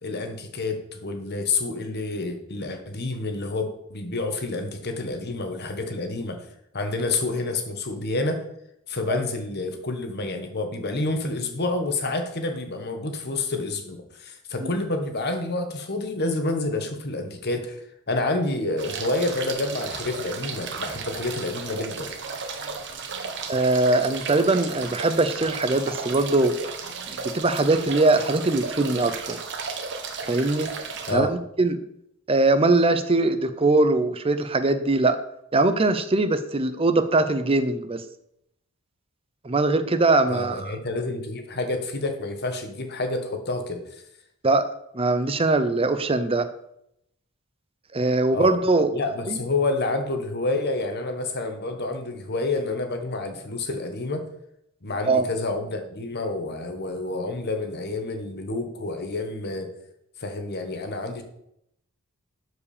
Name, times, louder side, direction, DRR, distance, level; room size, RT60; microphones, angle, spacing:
voice 1, 0.0-6.4 6.7-8.4 8.9-17.8 18.1-22.1 31.1-31.3 40.3-43.8 48.3-48.6 48.9-54.2 54.8-59.7 60.2-61.2, left 2 dB, 50° left, 6 dB, 1.4 m, -28 dB
sound 1, 18.8-31.1, right 5 dB, 55° right, 1.1 m, -34 dB
voice 2, 23.5-26.5 27.2-29.4 30.3-30.7 31.1-31.8 32.3-35.2 35.5-38.0 39.4-40.7 44.4-44.7 44.9-46.5 47.9-48.9 49.3-49.4 55.1-55.3, right 2 dB, 25° right, 11 dB, 0.6 m, -21 dB
12.5 x 4.9 x 5.0 m, 0.77 s
head